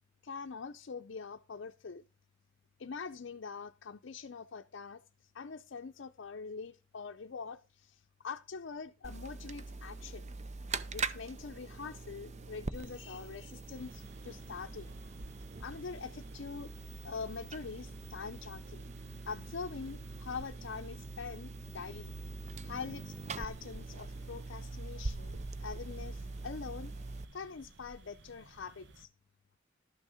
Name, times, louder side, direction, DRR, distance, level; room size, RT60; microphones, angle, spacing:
voice 1, 0.2-2.0 2.8-10.3 10.9-15.0 15.6-16.7 17.0-18.9 19.3-22.1 22.6-26.9 27.3-29.1, left 5 dB, 65° left, 0.6 m, -44 dB
sound 1, 9.0-27.3, right 3 dB, 35° right, 0.6 m, -43 dB
sound 2, 13.7-29.1, right 2 dB, 65° right, 1.0 m, -55 dB
12.5 x 6.4 x 4.9 m
head